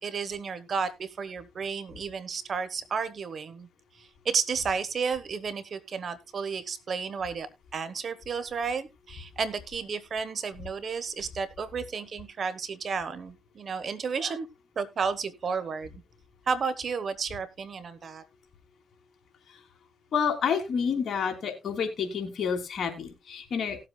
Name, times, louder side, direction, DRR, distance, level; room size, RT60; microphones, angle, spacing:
voice 1, 0.0-3.7 4.0-14.5 14.8-16.0 16.5-18.2, right 5 dB, 50° right, 15 dB, 1.1 m, -32 dB
voice 2, 20.1-23.8, left 6 dB, 55° left, 4 dB, 2.8 m, -29 dB
18.5 x 7.6 x 2.2 m, 0.22 s
cardioid pair, 90°, 0 cm